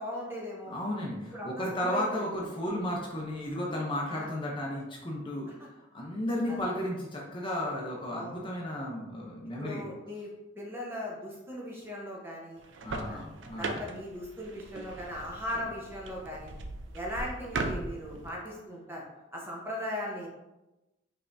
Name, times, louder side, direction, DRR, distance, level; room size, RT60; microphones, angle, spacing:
voice 1, 0.0-0.7 1.3-2.3 4.1-4.3 5.6-5.7 6.5-6.6 8.1-8.4 9.6-12.6 13.0-13.2 13.6-16.5 16.9-19.0 19.3-20.3, left 1 dB, 10° right, -3 dB, 0.9 m, -38 dB
voice 2, 0.7-5.5 5.9-9.9 12.8-13.8, left 1 dB, 25° left, -2 dB, 0.6 m, -34 dB
sound 1, 12.6-18.3, right 2 dB, 70° right, 0.5 m, -39 dB
5.4 x 3.3 x 2.6 m, 1.0 s
head